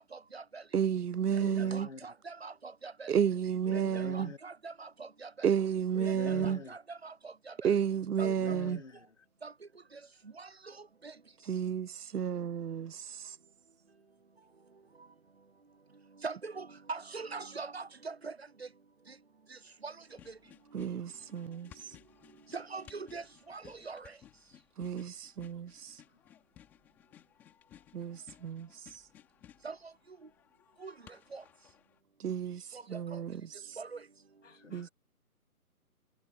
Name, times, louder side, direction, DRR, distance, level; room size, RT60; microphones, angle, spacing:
voice 1, 0.0-0.6 1.3-3.1 3.7-5.5 6.0-7.7 8.2-8.6 9.4-9.5 9.9-10.0 10.3-11.1 16.2-18.7 19.1-19.2 19.5-20.0 20.3-20.4 20.7-20.8 22.5-24.2 29.6-29.9 30.8-30.9 31.3-31.4 32.7-33.2 33.8-34.0, right 4 dB, 45° right, 0.8 m, -44 dB
voice 2, 0.7-1.9 3.1-4.3 5.4-6.6 7.6-8.8 11.5-13.3 20.7-21.7 24.8-25.9 27.9-28.7 32.2-32.6 32.9-33.4 34.7-34.9, right 8 dB, 85° right, 0.8 m, -31 dB
voice 3, 1.3-2.1 3.7-4.4 5.9-6.8 8.2-9.3 21.2-21.5 26.1-26.2 32.7-32.8 34.4-34.9, left 4 dB, 50° left, 2.4 m, -45 dB
sound 1, 20.1-32.0, left 10 dB, 5° left, 3.3 m, -59 dB
hypercardioid pair, 180°, 45 cm